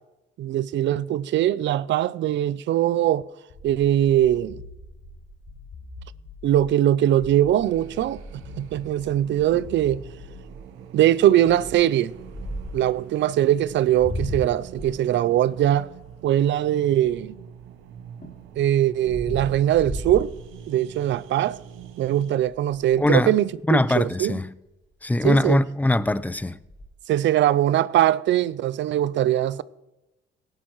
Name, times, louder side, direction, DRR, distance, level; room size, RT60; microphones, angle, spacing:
voice 1, 0.4-3.2 3.6-4.6 6.4-8.2 8.6-10.0 10.9-12.1 12.7-15.9 16.2-17.4 18.6-20.3 20.7-21.6 22.0-24.3 25.2-25.6 27.1-29.6, right 12 dB, 70° right, 0.4 m, -21 dB
sound 1, 3.5-6.8 7.4-10.8, left 2 dB, 80° left, 5.1 m, -44 dB
sound 2, 7.2-8.7 9.2-9.3 9.5-9.8 10.3-10.6 11.5-12.9 13.6-17.5 18.0-21.0 21.5-21.8 22.0-22.1 22.4-23.1 24.8-24.9 25.2-25.6 25.9-26.9, left 1 dB, 45° left, 4.0 m, -36 dB
sound 3, 7.6-22.4, right 9 dB, 90° right, 0.9 m, -44 dB
voice 2, 23.0-23.3 23.7-24.5 25.0-26.6, left 1 dB, 10° left, 0.4 m, -21 dB
17.5 x 11.5 x 3.0 m
cardioid pair, 90°, 20 cm